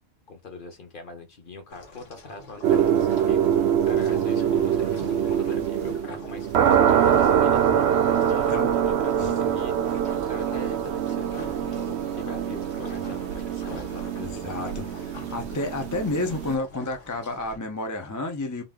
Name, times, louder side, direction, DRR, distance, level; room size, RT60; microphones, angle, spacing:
voice 1, 0.3-3.4 3.8-8.0 8.2-8.4 8.8-10.0 10.3-15.0, left 3 dB, 40° left, 1.0 m, -42 dB
sound 1, 1.7-17.6, left 2 dB, 60° left, 1.5 m, -44 dB
sound 2, 2.6-16.5, right 9 dB, 65° right, 0.7 m, -24 dB
voice 2, 9.2-9.6 14.2-14.7 15.3-18.6, left 2 dB, 20° left, 0.4 m, -30 dB
3.8 x 2.5 x 3.6 m
omnidirectional pair, 1.5 m